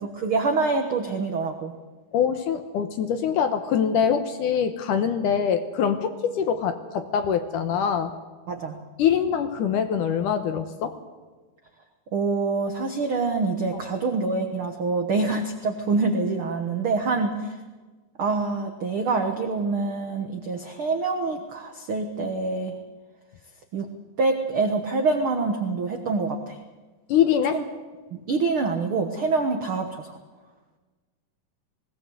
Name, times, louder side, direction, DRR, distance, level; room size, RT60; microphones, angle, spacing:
voice 1, 0.1-1.7 8.5-8.8 12.1-17.6 18.2-22.8 23.7-23.9 24.2-26.6 27.5-27.6 28.1-30.2, right 3 dB, 70° right, 5 dB, 1.2 m, -26 dB
voice 2, 2.1-8.1 9.0-10.9 27.1-27.6, left 8 dB, 70° left, 9 dB, 2.2 m, -24 dB
20.0 x 18.0 x 8.0 m, 1.3 s
omnidirectional pair, 4.4 m